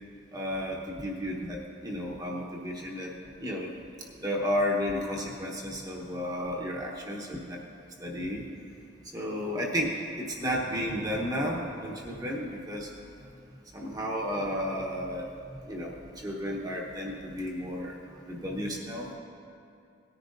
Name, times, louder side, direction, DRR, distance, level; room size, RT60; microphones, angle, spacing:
voice 1, 0.3-3.1 3.4-3.7 4.2-7.6 8.0-8.4 9.1-12.9 13.7-15.3 15.7-18.0 18.3-19.2, equal, 20° right, -2 dB, 1.0 m, -32 dB
17.5 x 10.0 x 2.6 m, 2.4 s
head